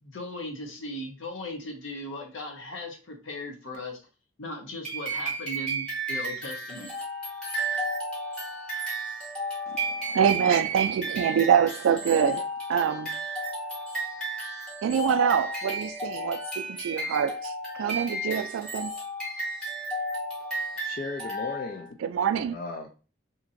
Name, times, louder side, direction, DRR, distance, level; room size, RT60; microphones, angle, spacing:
voice 1, 0.0-4.0 4.4-6.9, left 1 dB, 75° left, 0.7 m, -38 dB
sound 1, 4.8-21.9, right 1 dB, 5° left, 1.1 m, -33 dB
voice 2, 10.1-13.1 14.8-18.9 22.0-22.5, right 8 dB, 90° right, 0.3 m, -25 dB
voice 3, 20.7-22.0 22.5-22.9, left 3 dB, 50° left, 0.4 m, -36 dB
2.9 x 2.5 x 2.5 m
head